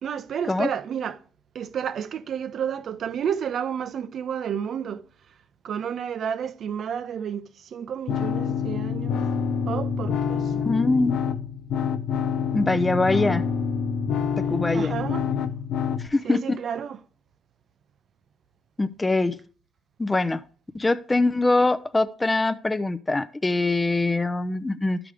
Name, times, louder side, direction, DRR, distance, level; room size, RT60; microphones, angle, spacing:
voice 1, 0.0-1.2 1.5-5.0 5.6-9.2 9.7-10.5 14.7-15.2 16.2-17.0, right 8 dB, 60° right, 0.5 m, -31 dB
sound 1, 8.1-16.1, left 7 dB, 80° left, 0.6 m, -27 dB
voice 2, 10.5-11.2 12.5-13.4 14.5-14.9 16.1-16.6 18.8-19.3 20.0-20.4 20.7-25.0, left 2 dB, 20° left, 0.5 m, -23 dB
12.5 x 4.9 x 3.4 m
cardioid pair, 90°, 0 cm